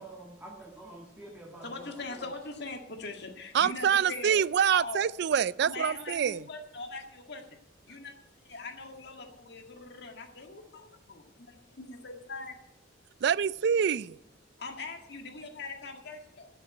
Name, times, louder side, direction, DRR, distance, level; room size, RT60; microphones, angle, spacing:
voice 1, 0.0-2.3, right 2 dB, 10° right, -2 dB, 1.6 m, -47 dB
voice 2, 1.6-4.4 4.7-5.0 5.6-7.4 7.9-12.6 14.6-16.5, left 3 dB, 60° left, 5 dB, 1.8 m, -41 dB
voice 3, 3.5-6.4 13.2-14.2, right 8 dB, 60° right, 21 dB, 0.3 m, -26 dB
11.5 x 6.8 x 9.1 m, 0.85 s
head